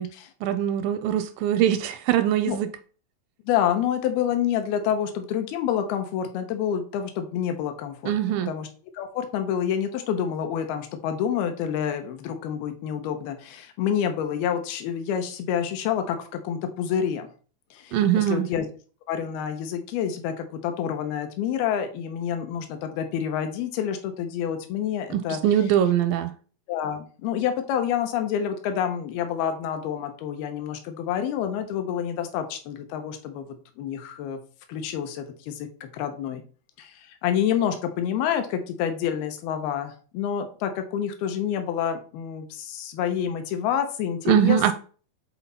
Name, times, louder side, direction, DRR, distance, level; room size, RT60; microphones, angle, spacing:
voice 1, 0.4-2.7 8.1-8.5 17.9-18.5 25.1-26.3 44.3-44.7, right 10 dB, 80° right, 2.1 m, -22 dB
voice 2, 3.5-8.1 8.5-8.7 8.9-17.3 17.7-18.7 19.1-25.4 26.7-33.5 33.8-34.4 34.7-36.4 36.8-44.7, left 9 dB, 85° left, 2.8 m, -28 dB
8.0 x 4.1 x 4.0 m
omnidirectional pair, 4.4 m